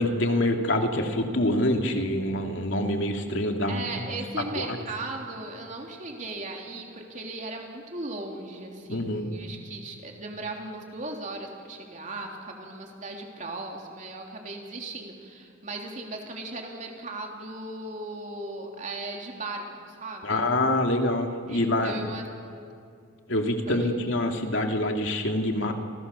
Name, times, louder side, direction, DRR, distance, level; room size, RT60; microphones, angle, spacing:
voice 1, 0.0-3.8 4.5-4.8 8.9-9.3 20.2-21.9 23.3-25.7, left 1 dB, 65° left, 3 dB, 2.7 m, -26 dB
voice 2, 3.7-20.4 21.5-22.2 23.7-23.9, right 2 dB, 35° right, 1 dB, 3.3 m, -37 dB
29.5 x 27.5 x 6.9 m, 2.3 s
head